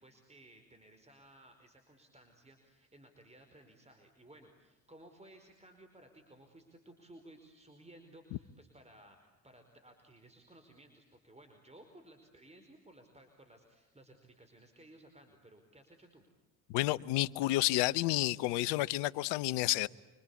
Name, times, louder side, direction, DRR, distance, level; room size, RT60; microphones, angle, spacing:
voice 1, 0.0-16.2, right 1 dB, 15° right, 4.8 m, -58 dB
voice 2, 16.7-19.9, left 17 dB, 75° left, 1.0 m, -30 dB
28.0 x 25.5 x 8.5 m
hypercardioid pair, 65°, 42 cm